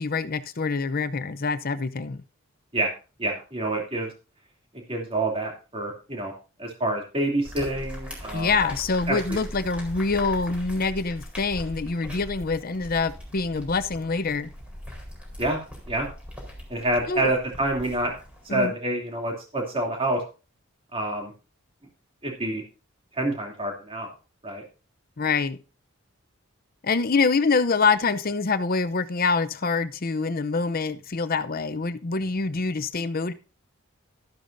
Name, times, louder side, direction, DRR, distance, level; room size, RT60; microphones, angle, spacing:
voice 1, 0.0-2.2 8.3-14.5 17.1-17.3 18.5-18.7 25.2-25.6 26.8-33.3, left 4 dB, 45° left, 0.7 m, -25 dB
voice 2, 3.2-4.1 4.7-6.3 6.6-8.7 9.1-9.2 15.4-15.6 15.9-16.1 16.7-18.1 18.5-20.2 20.9-21.3 22.2-22.6 23.1-24.1 24.4-24.6, right 1 dB, 25° right, 2.9 m, -27 dB
sound 1, 7.4-18.7, equal, 5° right, 4.2 m, -40 dB
13.0 x 11.5 x 2.7 m
head